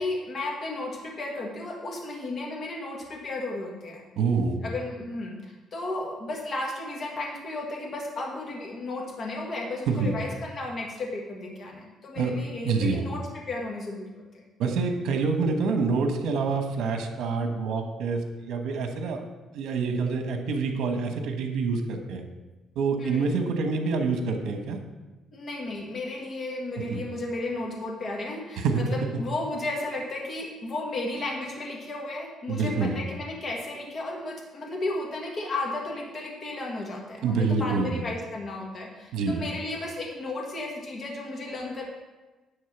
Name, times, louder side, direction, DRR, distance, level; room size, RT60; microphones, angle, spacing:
voice 1, 0.0-4.0 4.6-14.4 23.0-23.4 25.3-41.8, left 2 dB, 35° left, -1 dB, 1.5 m, -34 dB
voice 2, 4.2-4.6 9.9-10.1 12.2-12.3 12.6-13.0 14.6-19.2 19.5-22.2 22.7-24.8 26.9-27.0 28.6-28.8 32.5-33.0 37.2-38.0 39.1-39.4, right 4 dB, 80° right, 5 dB, 1.2 m, -26 dB
10.5 x 3.7 x 7.2 m, 1.2 s
cardioid pair, 155°, 0 cm